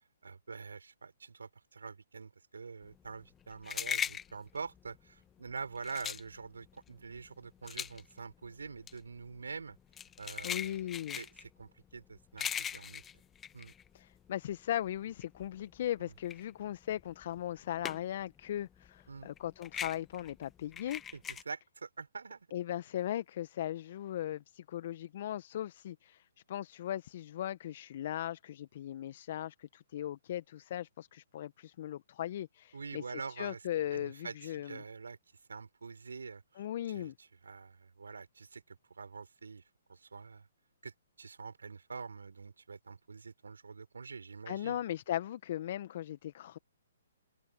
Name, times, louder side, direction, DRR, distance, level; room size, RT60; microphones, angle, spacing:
voice 1, 0.2-9.8 10.2-13.0 13.5-13.7 16.0-16.1 19.1-19.3 21.1-22.5 32.7-33.6 33.9-35.2 35.5-39.6 39.9-40.5 40.8-40.9 41.2-44.8, right 5 dB, 80° right, 5.7 m, -46 dB
sound 1, 2.9-14.5 14.9-18.3 18.6-21.4, left 8 dB, 15° left, 1.1 m, -40 dB
voice 2, 10.4-11.2 13.9-21.0 22.5-34.8 36.6-37.1 44.5-46.6, left 12 dB, 50° left, 1.2 m, -38 dB
figure-of-eight pair, 130°, 0 cm